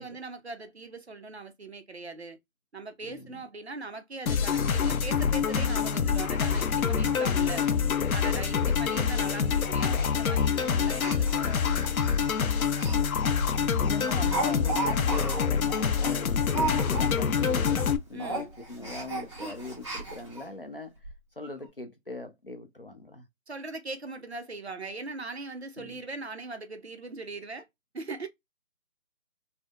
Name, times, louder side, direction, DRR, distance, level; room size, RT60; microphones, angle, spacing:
voice 1, 0.0-2.4 2.7-7.6 8.1-12.0 13.6-13.9 18.1-18.5 23.5-27.7 27.9-28.3, right 3 dB, 50° right, 0.5 m, -40 dB
voice 2, 3.0-3.4 9.8-10.1 12.9-15.6 16.0-20.9 21.4-23.2 25.8-26.0, left 2 dB, 45° left, 0.5 m, -41 dB
sound 1, 4.3-18.0, left 6 dB, 90° left, 0.7 m, -26 dB
Speech, 6.2-6.3 6.6-6.7 7.1-7.2 7.5-7.6 8.1-8.2 8.5-8.8 9.0-9.1 9.9-10.1 10.9-13.0 13.3-13.5 13.8-17.4 17.6-17.9 18.2-20.4 21.0-21.1 21.4-21.5, right 3 dB, 20° right, 1.0 m, -35 dB
3.5 x 2.0 x 2.3 m
hypercardioid pair, 180°, 41 cm